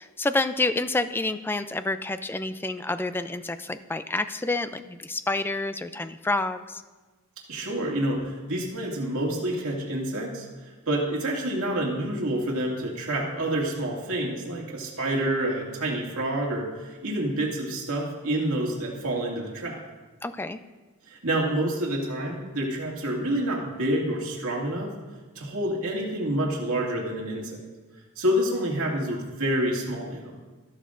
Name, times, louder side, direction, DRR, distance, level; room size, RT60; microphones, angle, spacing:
voice 1, 0.0-6.8 20.2-20.6, left 2 dB, 10° left, 10 dB, 0.3 m, -28 dB
voice 2, 7.5-19.8 21.1-24.9 25.4-27.6 28.2-30.4, right 1 dB, 75° right, -2 dB, 2.2 m, -28 dB
13.5 x 12.0 x 2.5 m, 1.3 s
head